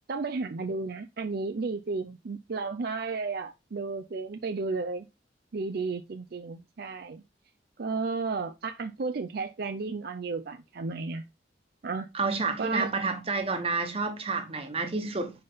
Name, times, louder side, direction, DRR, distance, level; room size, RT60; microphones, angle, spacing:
voice 1, 0.1-5.1 5.5-7.2 7.8-11.2 11.8-12.1 12.6-12.9, right 4 dB, 60° right, 0.5 m, -33 dB
voice 2, 12.1-15.3, right 3 dB, 35° right, 1.2 m, -29 dB
5.7 x 5.2 x 3.9 m
head